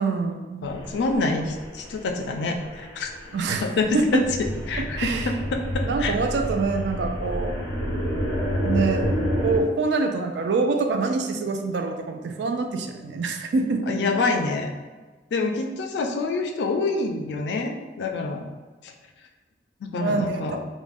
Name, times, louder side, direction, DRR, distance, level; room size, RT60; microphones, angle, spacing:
voice 1, 0.0-0.7 3.3-3.7 3.9-4.3 4.8-5.3 5.8-7.6 8.6-9.1 9.4-14.0 20.0-20.4, right 3 dB, 70° right, 5 dB, 0.3 m, -25 dB
voice 2, 0.6-3.1 3.6-6.1 13.9-14.7 15.3-18.4 18.8-18.9 19.8-20.6, left 3 dB, 70° left, 4 dB, 0.3 m, -26 dB
sound 1, 0.6-9.6, equal, 90° right, 1.2 m, -29 dB
2.4 x 2.1 x 3.4 m, 1.3 s
head